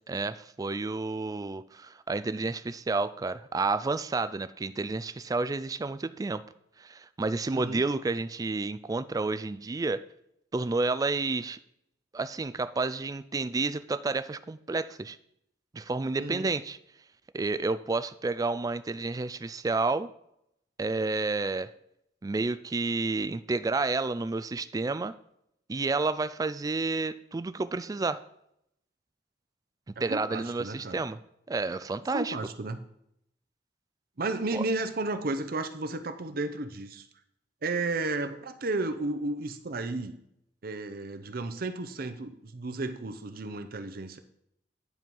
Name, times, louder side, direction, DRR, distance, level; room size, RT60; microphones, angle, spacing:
voice 1, 0.1-6.4 6.8-10.0 10.5-11.6 12.1-15.2 15.7-16.8 17.3-20.1 20.8-21.7 22.2-25.2 25.7-28.2 30.0-31.2 31.5-32.4 34.5-34.6, right 3 dB, 20° right, 14 dB, 0.3 m, -30 dB
voice 2, 7.5-7.8 16.2-16.5 30.1-31.0 32.1-32.8 34.2-37.1 37.6-40.2 40.6-44.2, right 2 dB, 55° right, 9 dB, 0.7 m, -33 dB
10.0 x 4.6 x 5.3 m, 0.76 s
head